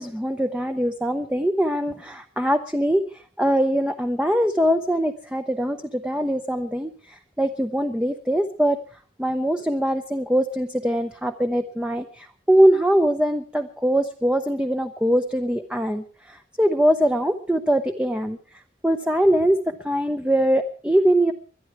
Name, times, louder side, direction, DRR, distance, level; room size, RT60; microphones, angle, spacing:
voice 1, 0.0-3.0 3.4-6.9 7.4-8.8 9.2-16.0 16.6-18.4 18.8-19.6 19.8-21.3, equal, 5° right, 7 dB, 0.6 m, -22 dB
22.0 x 12.0 x 4.6 m, 0.40 s
head